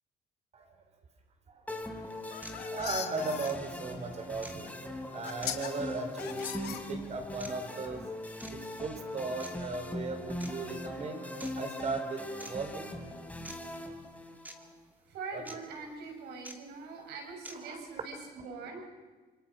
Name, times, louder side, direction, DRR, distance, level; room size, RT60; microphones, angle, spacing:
voice 1, 1.5-2.0 2.3-8.0 8.5-13.0 15.3-15.4 17.5-17.9 18.6-18.8, right 3 dB, 40° right, 6 dB, 4.8 m, -38 dB
sound 1, 1.7-14.7, left 1 dB, 10° left, 3.4 m, -41 dB
sound 2, 2.2-3.5 4.6-4.7 5.2-5.7 6.2-7.3, left 10 dB, 70° left, 2.5 m, -39 dB
sound 3, 2.4-2.6 3.4-3.6 4.4-4.6 5.4-5.5 6.4-6.6 7.4-7.5 8.4-8.6 9.4-9.5 10.4-10.5 11.4-11.5 12.4-12.5 13.4-13.6 14.4-14.6 15.4-15.6 16.4-16.6 17.4-17.6, right 1 dB, 10° right, 2.5 m, -45 dB
voice 2, 15.1-18.9, right 4 dB, 80° right, 2 dB, 7.0 m, -43 dB
27.0 x 23.5 x 6.3 m, 1.3 s
cardioid pair, 110°, 17 cm